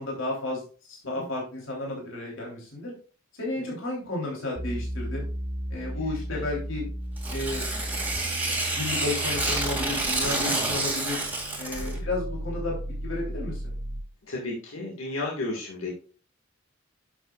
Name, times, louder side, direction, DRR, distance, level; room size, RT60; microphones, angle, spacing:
voice 1, 0.0-2.9 3.3-5.3 5.7-6.8 7.3-7.6 8.7-11.2 11.6-13.7, left 2 dB, 70° left, -3 dB, 3.4 m, -32 dB
sound 1, 4.6-14.1, right 1 dB, 40° right, 0.8 m, -35 dB
Tearing, 7.2-12.0, right 2 dB, 10° right, 2.2 m, -29 dB
voice 2, 10.2-10.5 11.8-12.0 14.2-15.9, left 2 dB, 85° left, -2 dB, 1.8 m, -34 dB
10.5 x 8.0 x 2.4 m, 0.38 s
head